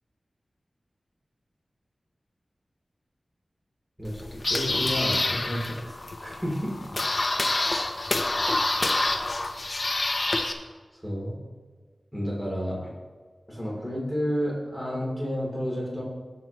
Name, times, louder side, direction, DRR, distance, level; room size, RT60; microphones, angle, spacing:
sound 1, 4.0-10.5, left 2 dB, 50° left, 0.9 m, -27 dB
voice 1, 4.0-6.7 11.0-11.4 12.1-12.9 13.5-16.0, equal, 5° right, -4 dB, 3.2 m, -31 dB
17.5 x 7.1 x 3.1 m, 1.5 s
wide cardioid pair, 50°, 0 cm